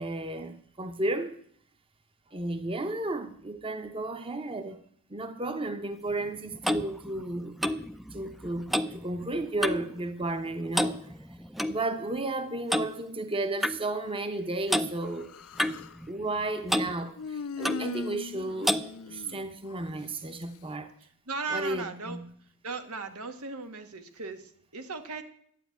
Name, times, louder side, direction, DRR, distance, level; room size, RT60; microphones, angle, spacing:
voice 1, 0.0-1.3 2.3-4.8 5.1-7.5 8.1-11.0 11.7-15.3 16.1-18.8 19.1-20.9 21.5-22.2, right 2 dB, 25° right, 0.9 m, -33 dB
Clock, 6.1-10.0 10.2-10.5 10.7-11.8 12.7-12.9 13.6-13.8 14.7-14.9 15.6-16.4 16.7-16.9 17.6-17.9 18.6-18.9, equal, ahead, 0.5 m, -30 dB
Human voice, 15.0-16.0 17.2-19.9, left 5 dB, 75° left, 0.5 m, -39 dB
voice 2, 21.0-22.2 22.6-25.2, right 4 dB, 90° right, 1.6 m, -37 dB
12.0 x 8.9 x 9.2 m
head